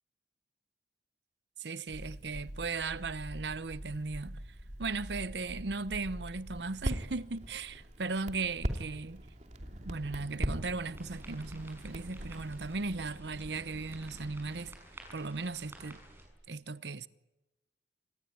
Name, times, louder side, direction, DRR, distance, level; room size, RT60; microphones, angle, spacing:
voice 1, 1.6-4.4 4.8-9.2 9.8-14.8 15.1-16.0 16.5-17.1, right 3 dB, 75° right, 0.9 m, -37 dB
Crackle, 1.9-12.7, equal, 40° right, 2.9 m, -41 dB
sound 1, 9.6-14.7, right 1 dB, 60° right, 2.3 m, -50 dB
sound 2, 10.9-16.3, right 1 dB, 15° right, 6.8 m, -53 dB
27.0 x 20.0 x 9.5 m
head